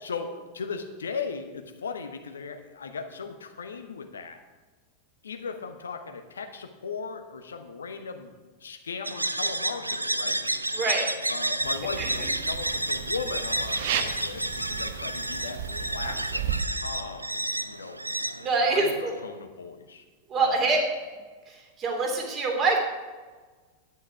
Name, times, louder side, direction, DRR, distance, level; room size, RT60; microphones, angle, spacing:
voice 1, 0.0-4.4 5.2-8.3 8.6-10.4 11.3-18.0 18.6-20.0 20.3-20.7, left 5 dB, 70° left, 6 dB, 1.0 m, -37 dB
sound 1, 9.1-19.3, right 1 dB, 85° right, 0.4 m, -31 dB
sound 2, 11.6-16.7, right 9 dB, 55° right, 0.8 m, -34 dB
voice 2, 18.4-19.1 20.3-20.8 21.8-22.8, right 3 dB, 30° right, 0 dB, 3.1 m, -24 dB
11.0 x 10.0 x 4.6 m, 1.4 s
figure-of-eight pair, 90°, 0 cm